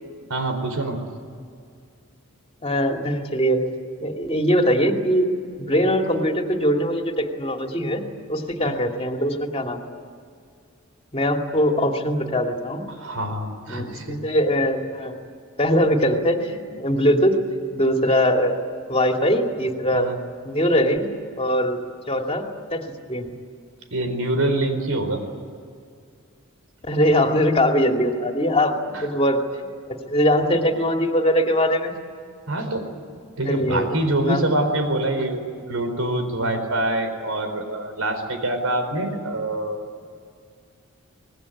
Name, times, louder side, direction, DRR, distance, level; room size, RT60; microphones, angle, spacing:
voice 1, 0.3-1.0 8.7-8.8 12.9-14.2 19.9-20.1 23.9-25.2 28.9-29.1 32.5-32.9 33.4-39.8, right 1 dB, 80° right, 7 dB, 4.4 m, -25 dB
voice 2, 2.6-3.6 4.0-5.3 5.6-8.0 8.3-9.9 11.1-12.8 13.7-15.1 15.6-17.4 17.7-18.6 18.9-20.1 20.4-21.1 21.4-21.8 22.1-22.4 22.7-23.3 26.8-31.9 33.4-34.4, equal, 30° left, 3 dB, 2.6 m, -21 dB
25.0 x 20.0 x 9.9 m, 2.2 s
head